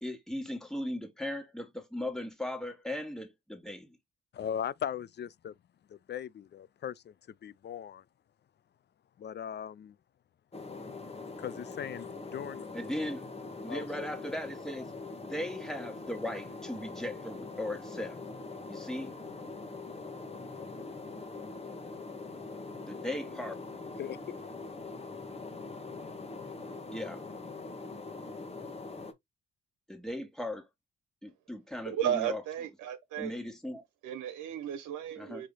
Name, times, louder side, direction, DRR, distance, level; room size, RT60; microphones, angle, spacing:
voice 1, 0.0-4.0 12.7-13.3 13.6-14.9 15.3-18.2 18.7-19.2 22.9-23.5 26.9-27.2 29.9-30.7 31.2-32.4 33.2-33.8 35.2-35.4, left 1 dB, ahead, 1.6 m, -37 dB
voice 2, 4.3-5.5 5.9-8.1 9.2-10.0 11.4-12.7 13.7-14.1 24.0-24.5, left 9 dB, 35° left, 0.4 m, -39 dB
sound 1, 10.5-29.1, left 3 dB, 20° left, 1.0 m, -43 dB
voice 3, 31.9-33.4 34.0-35.5, right 10 dB, 85° right, 0.9 m, -34 dB
4.8 x 2.8 x 3.8 m
cardioid pair, 90°, 30 cm